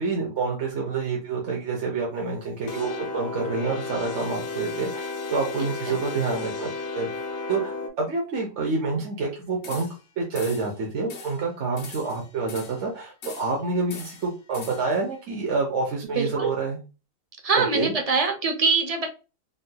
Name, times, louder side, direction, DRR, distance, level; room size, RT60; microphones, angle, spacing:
voice 1, 0.0-6.7 6.9-7.1 7.5-9.9 10.2-16.8 17.6-17.9, right 4 dB, 60° right, -1 dB, 1.0 m, -28 dB
sound 1, 2.7-7.9, left 4 dB, 80° left, 1.2 m, -33 dB
sound 2, 9.6-10.1 10.3-10.7 11.1-11.4 11.8-12.9 13.2-13.6 13.9-15.0, left 4 dB, 60° left, 0.9 m, -41 dB
voice 2, 16.2-16.5 17.4-19.1, right 4 dB, 45° right, 5 dB, 0.5 m, -23 dB
3.8 x 2.7 x 2.2 m, 0.31 s
omnidirectional pair, 1.4 m